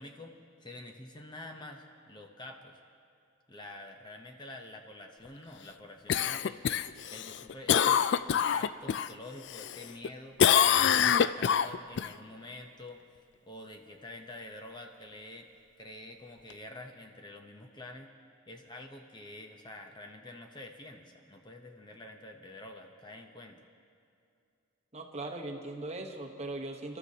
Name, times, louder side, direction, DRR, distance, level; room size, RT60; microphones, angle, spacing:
voice 1, 0.0-2.8 3.5-6.8 7.1-8.0 8.3-10.4 10.8-13.0 13.4-15.5 15.8-18.1 18.5-23.6, left 2 dB, 20° left, 3 dB, 0.7 m, -47 dB
Cough, 6.1-9.1 9.5-10.1 10.4-12.1 16.5-16.6, left 8 dB, 55° left, 0.3 m, -25 dB
voice 2, 24.9-27.0, right 2 dB, 30° right, 2 dB, 1.0 m, -39 dB
28.5 x 13.0 x 2.8 m, 2.5 s
head